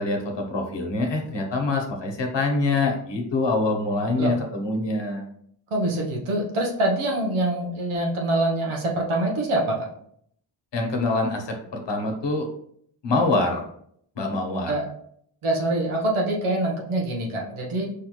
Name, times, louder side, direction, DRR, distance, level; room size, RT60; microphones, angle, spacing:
voice 1, 0.0-5.2 10.7-12.5 13.0-13.6 14.2-14.7, left 2 dB, 60° left, 3 dB, 1.0 m, -25 dB
voice 2, 5.7-9.7 14.7-14.9 15.4-17.8, right 1 dB, 85° right, -1 dB, 1.0 m, -25 dB
4.9 x 2.4 x 3.0 m, 0.66 s
cardioid pair, 45°, 48 cm